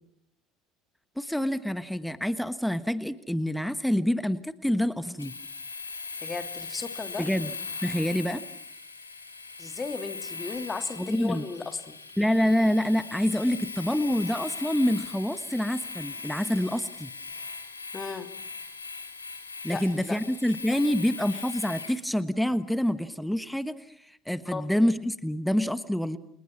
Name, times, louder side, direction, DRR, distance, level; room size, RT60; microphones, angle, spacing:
voice 1, 1.2-5.3 7.2-7.5 7.8-8.4 11.0-11.4 12.2-17.1 19.6-26.2, equal, ahead, 14 dB, 1.3 m, -27 dB
Domestic sounds home sounds, 5.2-22.0, left 4 dB, 80° left, 3.2 m, -39 dB
voice 2, 6.2-7.3 9.6-12.0 17.9-18.3 19.7-20.2 24.4-24.7, left 4 dB, 20° left, 7 dB, 3.0 m, -35 dB
29.5 x 29.0 x 6.1 m, 0.71 s
figure-of-eight pair, 65°, 0 cm